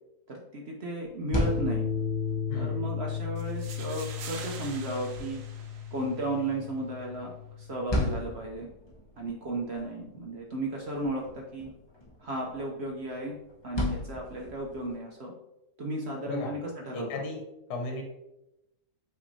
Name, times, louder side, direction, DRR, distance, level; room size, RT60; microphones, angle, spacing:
voice 1, 0.3-1.9 2.5-5.4 5.9-8.7 9.2-11.7 12.2-13.4 13.6-15.3 15.8-17.1, right 1 dB, 60° right, -1 dB, 0.7 m, -34 dB
sound 1, 1.0-15.0, left 1 dB, 30° left, 0.5 m, -38 dB
sound 2, 1.3-8.4, left 6 dB, 20° right, 0.8 m, -35 dB
voice 2, 2.5-2.9 16.3-16.5 16.9-17.4 17.7-18.0, left 2 dB, 80° left, 2 dB, 1.4 m, -35 dB
sound 3, 3.4-6.4, right 6 dB, 75° right, 1.2 m, -45 dB
5.7 x 3.4 x 2.7 m, 0.91 s
omnidirectional pair, 1.7 m